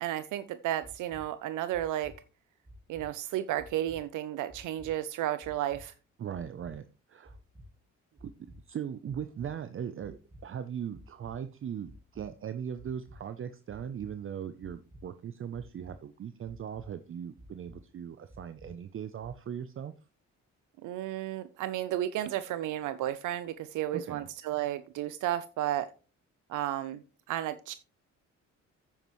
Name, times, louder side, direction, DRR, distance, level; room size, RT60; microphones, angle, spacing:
voice 1, 0.0-2.1 2.9-5.9 20.8-25.9 26.5-27.0 27.3-27.7, right 12 dB, 85° right, 13 dB, 0.6 m, -33 dB
sound 1, 0.8-1.2 1.7-2.1 2.6-3.1 3.6-4.0 4.5-4.9 5.4-5.8 6.3-6.7 7.2-7.7 8.2-8.6 9.1-9.5 10.0-10.4 10.9-11.3 11.8-12.3 12.8-13.2 13.7-14.1 14.6-15.0 15.5-15.9 16.4-16.9 17.4-17.8 18.3-18.7 19.2-19.3, equal, 20° right, 2.5 m, -51 dB
voice 2, 6.2-7.4 8.2-8.3 8.7-19.9 24.1-24.3, right 8 dB, 45° right, 11 dB, 0.6 m, -39 dB
9.3 x 8.9 x 3.1 m, 0.34 s
cardioid pair, 90°, 30 cm